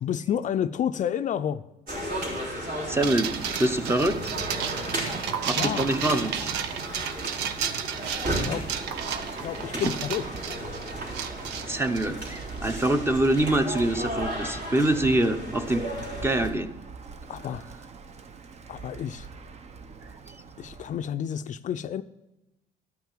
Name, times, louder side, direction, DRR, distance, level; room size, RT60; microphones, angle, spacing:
voice 1, 0.0-1.6 5.6-5.9 8.4-8.7 9.2-10.2 17.3-17.6 18.7-19.3 20.6-22.0, left 9 dB, 50° left, 11 dB, 0.4 m, -30 dB
sound 1, 1.9-16.5, right 1 dB, 60° right, 3.6 m, -35 dB
voice 2, 2.4-4.6 5.4-6.5 11.7-15.9 16.2-16.7, right 1 dB, 15° right, 9 dB, 0.8 m, -25 dB
sound 2, 3.0-12.6, right 8 dB, 85° right, 0.8 m, -33 dB
Bird, 8.0-21.1, right 4 dB, 40° right, 0.8 m, -43 dB
12.5 x 5.8 x 7.3 m, 0.96 s
cardioid pair, 110°, 17 cm